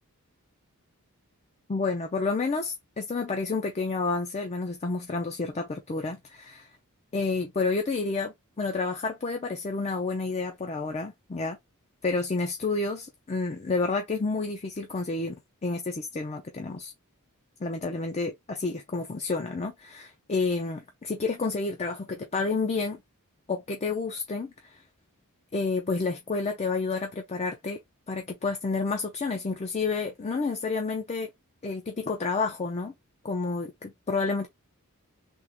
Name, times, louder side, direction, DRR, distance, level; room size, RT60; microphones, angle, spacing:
voice 1, 1.7-6.7 7.1-11.6 12.0-15.4 15.6-16.9 17.6-23.0 23.5-24.8 25.5-27.8 28.1-31.3 31.6-32.9 33.2-34.5, left 3 dB, 30° left, 0.5 m, -30 dB
3.6 x 2.4 x 2.9 m
head